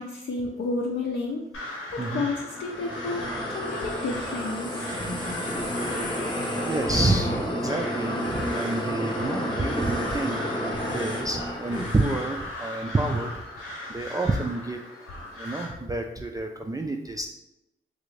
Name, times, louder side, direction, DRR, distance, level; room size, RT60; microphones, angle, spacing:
voice 1, 0.0-1.4 1.9-4.8, left 3 dB, 70° left, -2 dB, 0.5 m, -31 dB
Crow, 1.5-15.7, left 1 dB, 85° left, 1.0 m, -38 dB
sound 1, 2.5-12.3, equal, 25° left, 0.8 m, -31 dB
voice 2, 6.6-13.3 13.9-14.8 15.4-17.3, right 2 dB, 15° right, 2 dB, 0.3 m, -29 dB
3.2 x 2.5 x 3.2 m, 0.91 s
cardioid pair, 50°, 21 cm